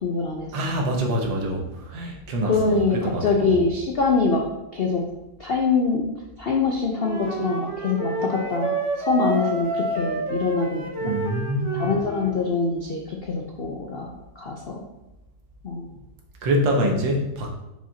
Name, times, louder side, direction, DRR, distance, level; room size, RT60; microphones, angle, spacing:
voice 1, 0.0-0.5 2.4-4.5 4.7-5.0 5.4-6.1 6.4-8.7 9.0-11.1 11.7-14.1 14.4-14.8 15.6-15.8, left 4 dB, 70° left, 0 dB, 0.5 m, -24 dB
voice 2, 0.5-3.6 11.0-12.0 16.4-17.5, equal, 80° right, 1 dB, 1.8 m, -25 dB
Wind instrument woodwind instrument, 7.0-12.3, right 2 dB, 35° right, 0.5 m, -29 dB
7.3 x 5.7 x 2.8 m, 0.95 s
omnidirectional pair, 2.0 m